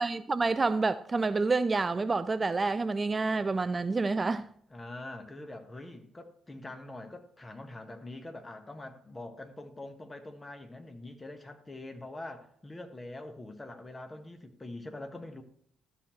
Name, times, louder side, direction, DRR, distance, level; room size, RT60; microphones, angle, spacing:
voice 1, 0.0-4.5, right 3 dB, 30° right, 0.3 m, -28 dB
voice 2, 4.7-15.4, left 2 dB, 20° left, 1.4 m, -44 dB
13.0 x 6.2 x 3.1 m
figure-of-eight pair, 45°, 0 cm